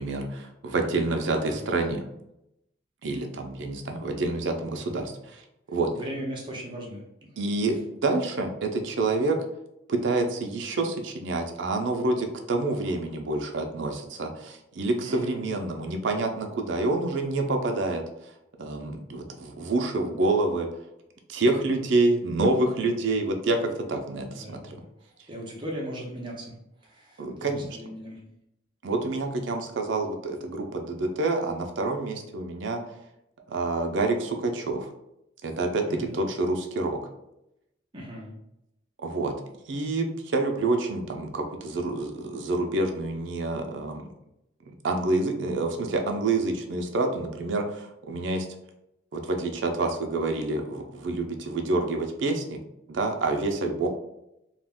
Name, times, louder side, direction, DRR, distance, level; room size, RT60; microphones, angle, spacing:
voice 1, 0.0-2.0 3.0-5.4 5.7-5.9 7.4-7.8 8.0-9.4 9.9-18.0 18.6-20.7 21.3-24.8 27.2-27.8 28.8-32.8 33.5-34.9 35.4-37.0 39.0-39.3 39.7-44.0 44.7-48.5 49.1-52.6 52.9-53.9, right 2 dB, 65° right, 4 dB, 0.4 m, -27 dB
voice 2, 0.7-1.1 1.4-1.8 4.7-5.2 5.9-7.4 15.0-15.4 24.3-26.6 26.8-28.3 35.9-36.1 37.9-38.4, equal, 25° right, -2 dB, 0.6 m, -39 dB
2.4 x 2.1 x 3.4 m, 0.84 s
head